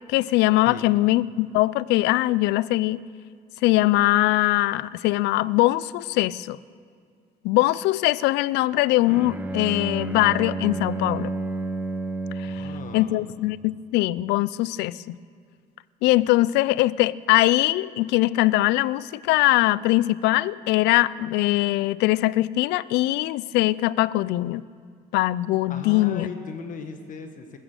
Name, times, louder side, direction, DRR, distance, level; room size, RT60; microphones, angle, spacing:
voice 1, 0.1-3.0 3.6-6.6 7.4-11.3 12.4-12.6 12.9-15.2 16.0-24.6 25.1-26.3, left 17 dB, 90° left, 20 dB, 0.4 m, -22 dB
voice 2, 0.7-1.0 12.4-13.3 25.7-27.6, left 5 dB, 50° left, 6 dB, 1.4 m, -37 dB
Bowed string instrument, 9.0-13.1, right 2 dB, 10° right, 1.0 m, -30 dB
15.0 x 14.0 x 6.7 m, 2.2 s
cardioid pair, 110°, 17 cm